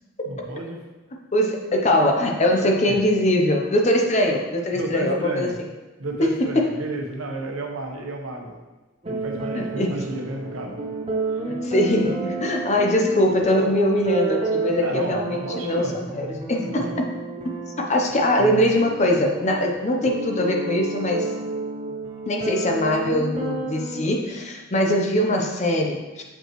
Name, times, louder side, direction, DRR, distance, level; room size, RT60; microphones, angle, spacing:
voice 1, 0.2-0.8 2.6-3.0 4.7-5.6 6.0-8.5 9.1-10.7 14.7-16.0 16.5-17.0, right 2 dB, 80° right, 2 dB, 0.9 m, -32 dB
voice 2, 1.3-5.5 6.2-6.7 9.5-10.0 11.6-17.1 17.4-21.3 22.3-26.2, left 1 dB, 35° left, 2 dB, 0.7 m, -22 dB
sound 1, 9.0-24.1, right 3 dB, 30° right, 0.7 m, -31 dB
6.7 x 5.3 x 3.0 m, 1.1 s
head